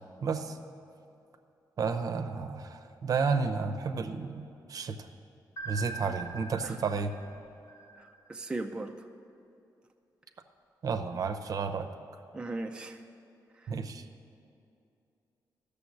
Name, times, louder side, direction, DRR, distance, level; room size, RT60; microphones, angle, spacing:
voice 1, 0.2-0.6 1.8-5.1 5.6-7.1 10.8-11.9 13.7-14.0, right 5 dB, 55° right, 8 dB, 0.7 m, -32 dB
sound 1, 5.6-8.5, right 4 dB, 45° left, 1.1 m, -43 dB
voice 2, 8.0-8.9 12.3-13.0 13.6-13.7, right 2 dB, 15° right, 4 dB, 0.4 m, -38 dB
13.0 x 6.9 x 8.4 m, 2.6 s
wide cardioid pair, 145°, 7 cm